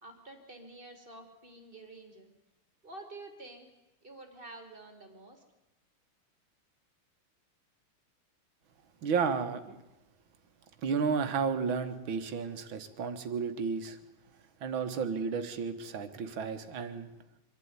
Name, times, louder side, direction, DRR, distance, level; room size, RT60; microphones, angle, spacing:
voice 1, 0.0-2.3 2.8-3.7 4.0-5.4, right 2 dB, 25° right, 5 dB, 2.8 m, -49 dB
voice 2, 9.0-9.8 10.8-14.0 14.6-17.1, right 5 dB, 65° right, 8 dB, 2.2 m, -32 dB
24.5 x 12.0 x 9.6 m, 0.94 s
omnidirectional pair, 2.4 m